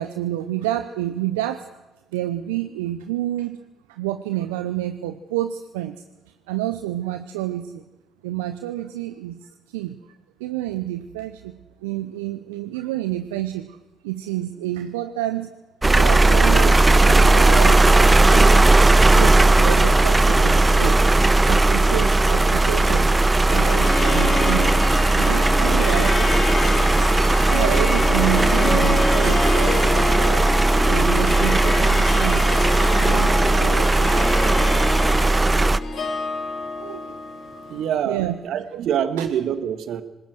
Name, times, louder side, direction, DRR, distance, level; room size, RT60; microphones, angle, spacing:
voice 1, 0.0-1.7 2.1-3.6 3.9-6.0 6.5-7.8 8.2-10.0 10.4-13.8 14.0-15.5 15.9-18.7 19.1-21.0 21.5-23.1 23.5-24.8 25.1-26.5 27.5-30.4 30.8-32.5 32.9-34.4 36.8-37.2 37.5-37.7 38.1-38.4 39.2-39.3, right 14 dB, 85° right, 9 dB, 0.8 m, -29 dB
sound 1, 15.8-35.8, right 2 dB, 25° right, 1.0 m, -17 dB
sound 2, 19.8-30.4, left 2 dB, 20° left, 4.2 m, -36 dB
Harp, 23.5-38.0, left 3 dB, 60° left, 6.0 m, -27 dB
voice 2, 37.7-40.0, right 9 dB, 65° right, 12 dB, 1.8 m, -25 dB
25.0 x 20.0 x 6.2 m, 1.1 s
hypercardioid pair, 45°, 0 cm